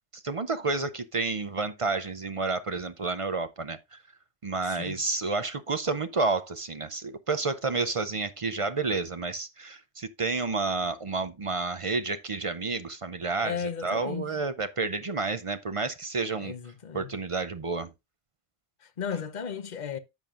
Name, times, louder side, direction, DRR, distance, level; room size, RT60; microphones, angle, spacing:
voice 1, 0.1-4.0 4.4-13.6 13.8-16.5 16.9-17.9, right 3 dB, 40° right, 0.5 m, -30 dB
voice 2, 4.6-5.0 13.4-14.3 16.4-17.1 18.8-20.0, left 7 dB, 45° left, 0.9 m, -35 dB
10.5 x 7.3 x 2.5 m
omnidirectional pair, 1.2 m